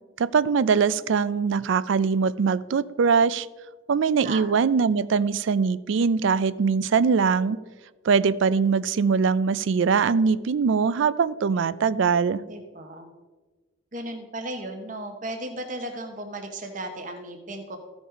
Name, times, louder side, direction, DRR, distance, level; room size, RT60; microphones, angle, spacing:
voice 1, 0.2-3.5 3.9-7.6 8.0-12.4, right 5 dB, 65° right, 18 dB, 0.4 m, -22 dB
voice 2, 12.5-13.1 13.9-17.8, right 1 dB, 40° right, 4 dB, 0.9 m, -35 dB
15.0 x 5.2 x 4.9 m, 1.3 s
head